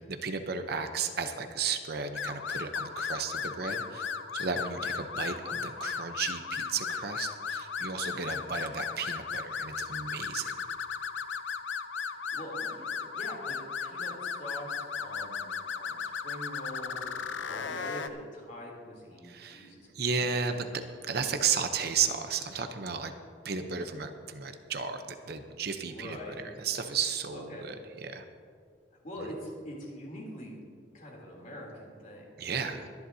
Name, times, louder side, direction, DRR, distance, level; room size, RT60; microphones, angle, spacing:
voice 1, 0.0-10.5 19.2-23.2 23.4-28.2 29.2-29.3 32.4-32.8, right 6 dB, 55° right, 7 dB, 0.8 m, -34 dB
sound 1, 2.1-18.1, left 6 dB, 85° left, 0.7 m, -36 dB
voice 2, 4.4-4.7 12.1-13.6 13.8-15.5 15.8-20.3 25.9-26.4 27.3-27.7 28.9-30.6 30.9-32.2 32.6-32.8, equal, 45° left, -2 dB, 3.2 m, -44 dB
23.0 x 10.5 x 2.8 m, 2.2 s
head